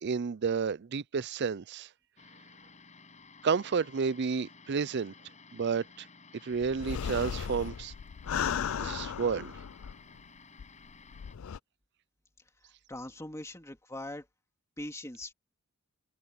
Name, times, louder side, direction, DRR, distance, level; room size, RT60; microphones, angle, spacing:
voice 1, 0.0-1.9 3.4-5.1 5.5-6.1 6.4-7.9 8.8-9.5, right 5 dB, 50° right, 0.5 m, -31 dB
sound 1, 2.2-11.4, left 4 dB, 35° left, 6.0 m, -55 dB
sound 2, 6.6-10.2 10.6-10.7 11.1-11.6, left 7 dB, 65° left, 0.4 m, -35 dB
voice 2, 12.9-14.3 14.8-15.3, left 1 dB, 15° left, 2.7 m, -41 dB
head